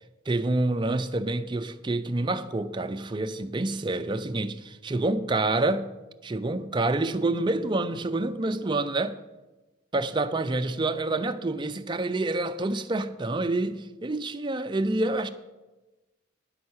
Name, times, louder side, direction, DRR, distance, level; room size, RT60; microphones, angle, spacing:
voice 1, 0.3-5.9 6.2-9.2 9.9-15.3, right 2 dB, 25° right, 0.4 m, -27 dB
9.5 x 5.8 x 7.9 m
head